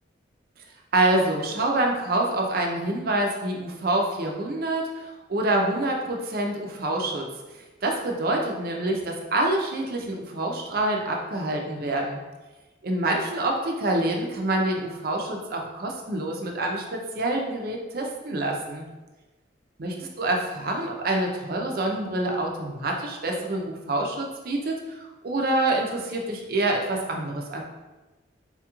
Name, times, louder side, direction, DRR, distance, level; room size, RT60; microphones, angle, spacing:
voice 1, 0.9-7.3 7.8-12.2 12.8-18.9 19.8-27.6, right 2 dB, 50° right, 1 dB, 0.5 m, -26 dB
4.2 x 2.3 x 2.9 m, 1.2 s
head